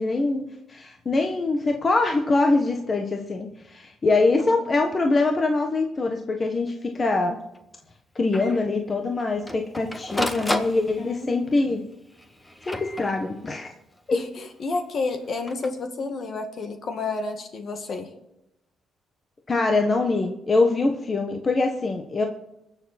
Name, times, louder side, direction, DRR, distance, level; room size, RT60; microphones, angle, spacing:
voice 1, 0.0-7.4 8.1-11.8 12.7-13.7 14.1-14.2 19.5-22.3, left 3 dB, 35° left, 3 dB, 1.4 m, -23 dB
voice 2, 4.4-4.8 11.0-11.6 14.1-18.1, left 3 dB, 50° left, 6 dB, 2.1 m, -31 dB
Printer, 6.7-6.8 7.1-7.2 7.5-7.6 8.3-8.6 9.2-11.3 12.1-13.6 15.3-15.7, left 1 dB, 15° left, 1.5 m, -32 dB
21.5 x 7.2 x 4.3 m, 0.87 s
cardioid pair, 90°, 0 cm